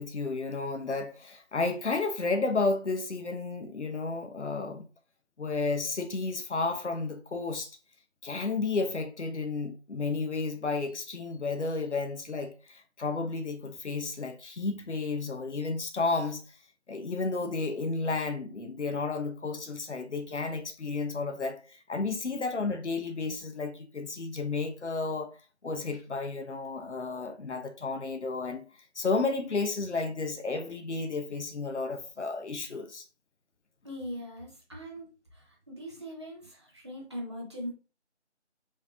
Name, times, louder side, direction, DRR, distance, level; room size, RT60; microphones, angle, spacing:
voice 1, 0.0-4.8 5.4-7.8 8.2-16.4 16.9-25.4 25.6-28.6 28.9-33.0, left 3 dB, 80° left, 0.9 m, -32 dB
voice 2, 33.8-37.7, equal, 25° right, 1.1 m, -41 dB
5.6 x 3.3 x 2.6 m
figure-of-eight pair, 165°, 35 cm